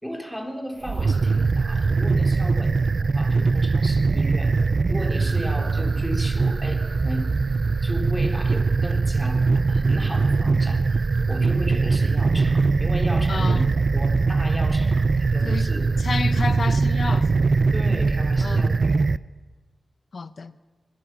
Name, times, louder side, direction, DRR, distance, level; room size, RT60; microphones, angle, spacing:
voice 1, 0.0-4.5 4.9-7.3 7.8-10.8 11.3-15.9 17.7-19.0, equal, ahead, 3.8 m, -35 dB
sound 1, 0.8-19.2, right 4 dB, 50° right, 0.6 m, -21 dB
voice 2, 13.3-13.7 15.4-15.7 16.0-17.4 18.4-18.8 20.1-20.5, left 4 dB, 60° left, 1.0 m, -30 dB
24.5 x 21.0 x 6.3 m
cardioid pair, 70°, 0 cm